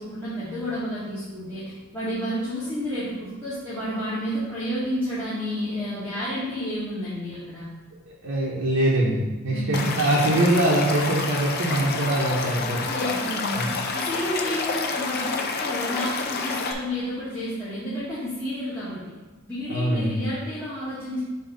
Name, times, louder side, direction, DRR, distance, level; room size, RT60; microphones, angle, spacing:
voice 1, 0.0-7.7 9.5-9.9 12.8-19.1 19.5-21.2, equal, 10° left, -12 dB, 1.5 m, -30 dB
voice 2, 8.2-12.8 13.5-13.7 19.7-20.2, right 1 dB, 65° right, -6 dB, 1.0 m, -23 dB
Stream / Liquid, 9.7-16.7, left 4 dB, 45° left, 0.6 m, -29 dB
6.5 x 2.9 x 5.3 m, 1.2 s
head